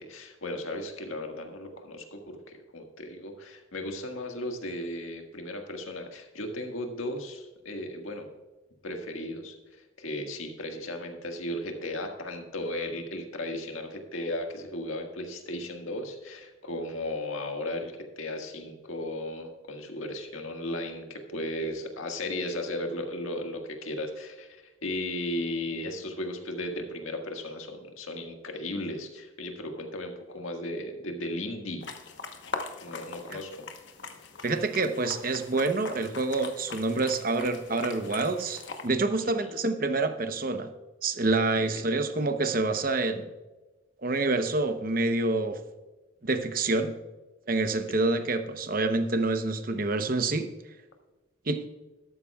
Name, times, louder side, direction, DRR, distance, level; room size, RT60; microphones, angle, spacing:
voice 1, 0.0-8.3 8.8-9.5 10.0-31.8 32.8-33.5 39.2-39.3 41.6-41.9 48.1-48.2, left 1 dB, 85° left, 3 dB, 1.7 m, -35 dB
sound 1, 31.8-38.9, left 4 dB, 60° left, 1.1 m, -41 dB
voice 2, 34.4-40.7 41.0-43.3 44.0-45.6 46.2-47.0 47.5-50.5 51.5-51.6, right 3 dB, 45° right, 8 dB, 0.8 m, -27 dB
13.0 x 12.5 x 2.3 m, 1.1 s
head